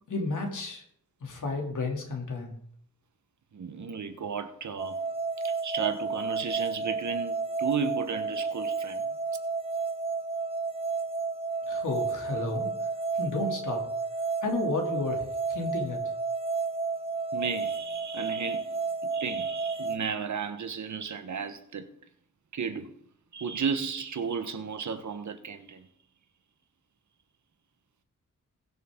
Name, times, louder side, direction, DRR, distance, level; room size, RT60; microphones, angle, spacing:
voice 1, 0.1-0.8 1.2-2.5 11.7-12.7 13.1-13.8 14.4-16.0, left 2 dB, 75° left, 3.0 m, -32 dB
voice 2, 3.5-5.0 5.4-9.0 17.3-18.7 19.0-21.9 22.5-22.9 23.3-25.9, right 6 dB, 70° right, 1.3 m, -34 dB
sound 1, 4.8-20.0, right 4 dB, 20° right, 1.2 m, -32 dB
20.5 x 7.1 x 3.8 m
wide cardioid pair, 130°, 31 cm